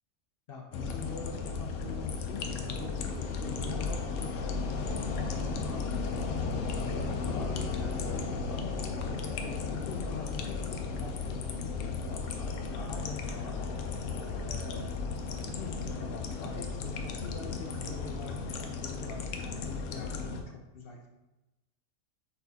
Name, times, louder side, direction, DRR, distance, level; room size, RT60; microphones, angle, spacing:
voice 1, 0.5-8.7 9.4-13.8 14.4-15.0 15.5-21.1, left 4 dB, 60° left, 2 dB, 0.7 m, -44 dB
sound 1, 0.7-20.4, left 4 dB, 85° left, 0.9 m, -35 dB
4.4 x 4.1 x 2.7 m, 0.99 s
omnidirectional pair, 1.3 m